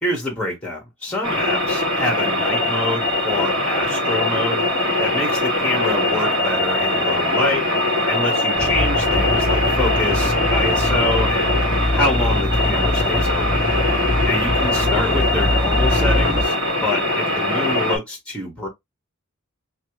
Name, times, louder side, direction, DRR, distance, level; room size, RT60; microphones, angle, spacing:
voice 1, 0.0-4.6 5.0-7.7 8.1-11.6 11.9-13.6 14.3-16.5 16.8-18.7, left 2 dB, 5° left, 1.4 m, -26 dB
sound 1, 1.2-18.0, left 1 dB, 65° right, 2.4 m, -21 dB
sound 2, 8.5-16.4, left 1 dB, 25° left, 1.6 m, -23 dB
3.5 x 3.2 x 3.1 m
head